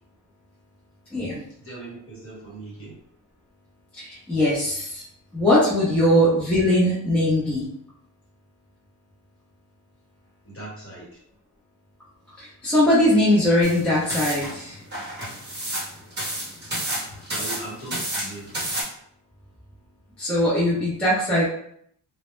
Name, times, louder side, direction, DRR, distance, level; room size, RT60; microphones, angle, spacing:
voice 1, 1.6-3.0 6.0-6.1 10.4-11.2 17.3-18.5, right 2 dB, 30° left, -6 dB, 1.2 m, -39 dB
voice 2, 3.9-5.0 5.3-7.7 12.4-14.8 20.2-21.5, left 1 dB, 5° left, -10 dB, 0.5 m, -20 dB
sound 1, 13.6-18.8, right 1 dB, 25° right, 0.8 m, -31 dB
2.1 x 2.0 x 3.0 m, 0.66 s
wide cardioid pair, 170°, 42 cm